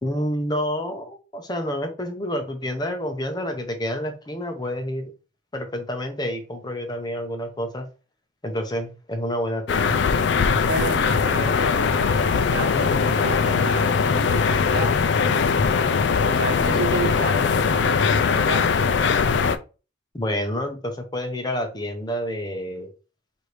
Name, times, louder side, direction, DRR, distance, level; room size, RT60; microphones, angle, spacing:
voice 1, 0.0-5.1 5.5-7.9 8.4-10.0 20.1-22.9, equal, 20° left, 0.6 m, -28 dB
sound 1, 9.7-19.6, left 5 dB, 65° left, 0.4 m, -21 dB
voice 2, 10.7-15.8 16.3-18.8, right 3 dB, 70° right, 0.9 m, -32 dB
4.7 x 2.6 x 3.1 m
head